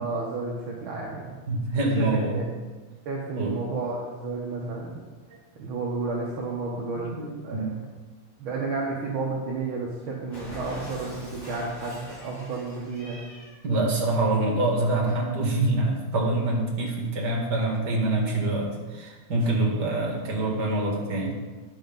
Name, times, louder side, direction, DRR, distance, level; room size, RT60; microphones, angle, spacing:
voice 1, 0.0-1.3 2.0-2.1 2.3-2.4 3.0-5.0 5.6-7.7 8.4-13.2, right 3 dB, 55° right, -3 dB, 1.6 m, -32 dB
voice 2, 1.5-2.4 3.3-3.5 6.9-7.8 8.5-8.7 13.6-21.3, right 2 dB, 35° right, -2 dB, 2.3 m, -25 dB
Cat, 10.3-13.6, left 1 dB, 30° left, 4.0 m, -41 dB
10.0 x 7.1 x 5.3 m, 1.3 s
omnidirectional pair, 3.5 m